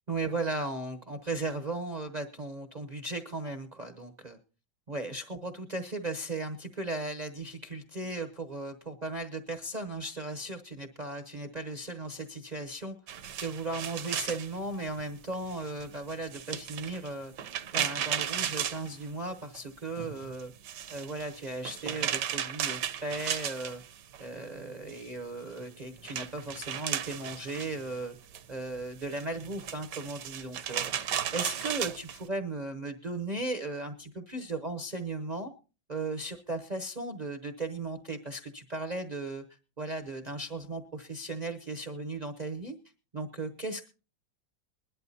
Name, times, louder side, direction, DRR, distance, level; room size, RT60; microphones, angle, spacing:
voice 1, 0.1-4.4 4.9-13.0 13.4-17.3 17.7-20.5 20.9-23.8 24.2-28.2 28.5-30.9 31.3-35.5 35.9-39.4 39.8-42.8 43.1-43.9, right 2 dB, 40° right, 8 dB, 0.6 m, -36 dB
sound 1, 13.1-19.6 19.9-24.3 24.6-32.2, right 10 dB, 70° right, 1.3 m, -35 dB
21.0 x 11.5 x 2.7 m, 0.33 s
omnidirectional pair, 2.1 m